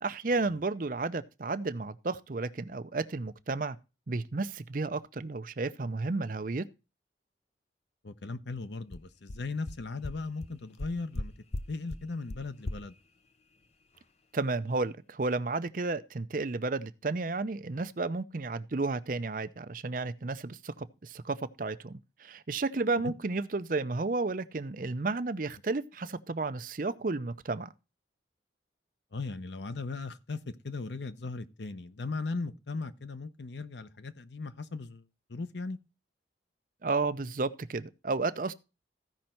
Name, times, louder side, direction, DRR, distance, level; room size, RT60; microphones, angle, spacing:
voice 1, 0.0-3.8 4.1-6.7 14.3-27.7 36.8-38.5, right 3 dB, 50° right, 0.6 m, -32 dB
voice 2, 8.0-11.3 11.7-12.9 23.0-23.1 29.1-35.0 35.3-35.8, left 3 dB, 80° left, 0.8 m, -37 dB
sound 1, 8.6-8.7 8.9-9.0 9.3-9.4 9.7-9.8 10.0-10.1 10.4-10.5 10.8-11.2 11.5-11.6 11.9-12.0 12.3-12.4 12.7-12.8, left 2 dB, 35° left, 0.6 m, -35 dB
14.5 x 5.3 x 4.4 m
head